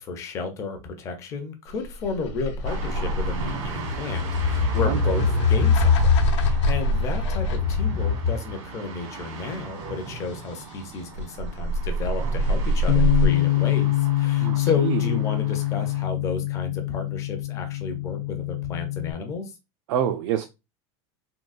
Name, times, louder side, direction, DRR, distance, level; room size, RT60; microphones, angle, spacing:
voice 1, 0.0-19.5, left 4 dB, 20° left, 0.4 m, -32 dB
sound 1, 1.8-8.5 11.2-13.3, left 2 dB, 70° left, 0.8 m, -22 dB
sound 2, 2.6-16.1, right 4 dB, 85° right, 1.4 m, -38 dB
Bass guitar, 12.9-19.1, left 17 dB, 90° left, 0.4 m, -25 dB
voice 2, 14.4-15.0 19.9-20.4, right 9 dB, 65° right, 0.4 m, -26 dB
3.6 x 2.3 x 2.4 m
supercardioid pair, 180°, 16 cm